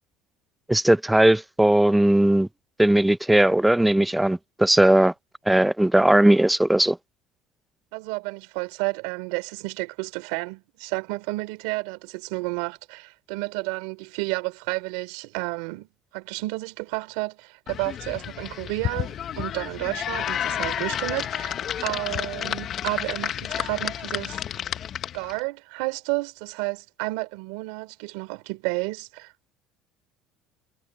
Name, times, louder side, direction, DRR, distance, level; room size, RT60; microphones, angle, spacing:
voice 1, 0.7-2.5 2.8-5.1 5.5-7.0, right 1 dB, 5° right, 0.5 m, -18 dB
voice 2, 7.9-24.4 25.1-29.3, right 24 dB, 90° right, 3.6 m, -31 dB
sound 1, 17.7-25.4, left 10 dB, 45° left, 0.7 m, -31 dB
cardioid pair, 125°, 0 cm